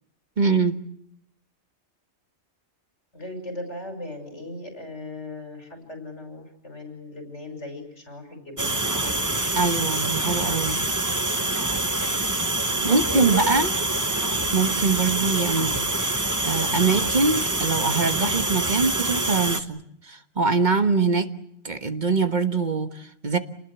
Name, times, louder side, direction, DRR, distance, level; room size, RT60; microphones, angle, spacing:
voice 1, 0.4-0.8 9.5-10.8 12.8-13.7 14.5-15.7 16.4-21.3 21.6-23.4, right 4 dB, 45° right, 9 dB, 1.4 m, -23 dB
voice 2, 3.1-9.4 12.7-13.5, left 2 dB, 85° left, 5 dB, 6.3 m, -37 dB
sound 1, 8.6-19.6, right 2 dB, 15° right, 1.1 m, -25 dB
28.5 x 20.0 x 8.2 m, 0.73 s
omnidirectional pair, 1.2 m